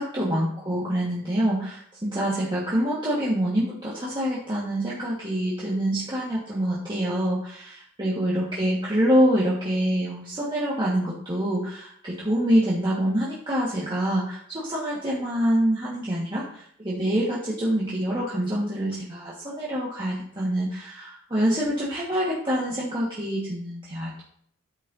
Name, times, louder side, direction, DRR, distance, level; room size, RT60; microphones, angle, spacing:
voice 1, 0.0-24.2, equal, 20° right, -7 dB, 1.7 m, -26 dB
9.9 x 9.2 x 2.8 m, 0.63 s
head